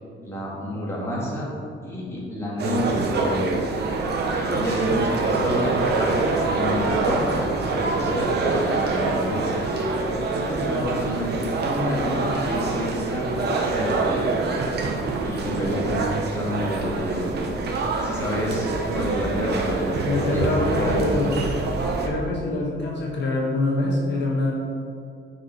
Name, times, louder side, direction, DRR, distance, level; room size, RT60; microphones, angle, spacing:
voice 1, 0.2-1.5 1.8-3.5 4.3-9.6 10.3-13.3 13.7-14.3 15.2-17.3 18.0-21.4, equal, 10° left, -6 dB, 2.0 m, -29 dB
sound 1, 2.6-22.1, right 3 dB, 50° right, 1.0 m, -25 dB
Trumpet, 3.8-10.5, right 1 dB, 85° right, 1.4 m, -41 dB
voice 2, 20.0-21.5 22.0-24.5, left 2 dB, 60° left, -3 dB, 1.4 m, -25 dB
9.8 x 4.9 x 4.4 m, 2.5 s
cardioid pair, 155°, 21 cm